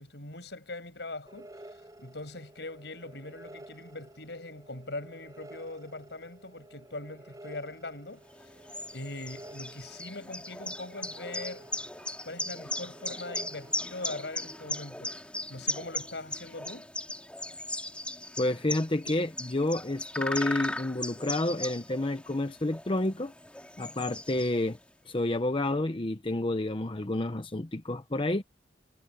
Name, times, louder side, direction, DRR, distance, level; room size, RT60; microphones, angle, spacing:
voice 1, 0.0-8.2 8.9-11.7 12.2-15.2 15.5-16.9 24.4-24.5, left 2 dB, 70° left, 6.8 m, -41 dB
sound 1, 1.3-14.8, right 1 dB, 20° right, 7.1 m, -51 dB
sound 2, 8.3-24.9, left 1 dB, 5° left, 5.5 m, -38 dB
voice 2, 18.4-23.3 23.8-24.8 25.0-28.4, left 2 dB, 30° left, 0.8 m, -29 dB
head